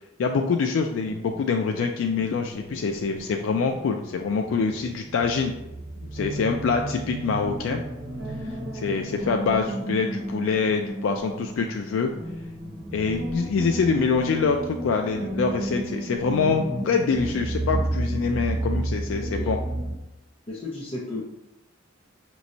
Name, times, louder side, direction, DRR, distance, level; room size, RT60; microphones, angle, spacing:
voice 1, 0.2-5.5 6.1-7.8 8.7-12.1 12.9-19.6, left 5 dB, 75° left, 3 dB, 0.3 m, -25 dB
sound 1, 1.0-20.0, right 1 dB, 50° right, 1.0 m, -32 dB
voice 2, 19.2-19.6 20.5-21.2, left 2 dB, 30° left, -5 dB, 0.6 m, -34 dB
5.1 x 3.0 x 2.7 m, 0.92 s
head